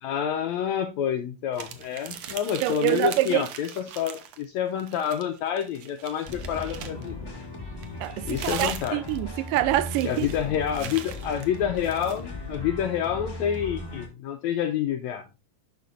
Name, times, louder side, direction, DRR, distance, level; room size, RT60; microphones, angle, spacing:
voice 1, 0.0-7.2 8.2-9.0 10.0-15.2, left 9 dB, 80° left, 1.7 m, -28 dB
sound 1, 1.5-4.4 4.8-7.1 7.8-12.2, right 9 dB, 70° right, 1.7 m, -40 dB
voice 2, 2.6-3.5 8.0-10.3, right 15 dB, 85° right, 2.3 m, -25 dB
sound 2, 6.2-14.1, left 2 dB, 35° left, 0.4 m, -37 dB
11.5 x 6.0 x 2.5 m
omnidirectional pair, 3.8 m